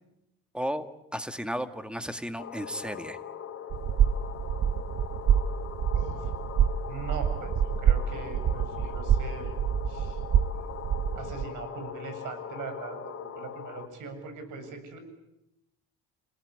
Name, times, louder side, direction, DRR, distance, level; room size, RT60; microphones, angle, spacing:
voice 1, 0.5-0.9 1.1-3.2, equal, 5° right, 9 dB, 2.0 m, -33 dB
sound 1, 2.4-13.9, left 8 dB, 45° left, 3.5 m, -41 dB
sound 2, 3.7-11.5, right 9 dB, 55° right, 1.3 m, -26 dB
voice 2, 5.9-6.3 6.9-9.5 9.9-10.2 11.2-15.0, right 4 dB, 75° right, 8 dB, 7.5 m, -41 dB
29.0 x 19.0 x 9.8 m, 0.88 s
cardioid pair, 100°, 32 cm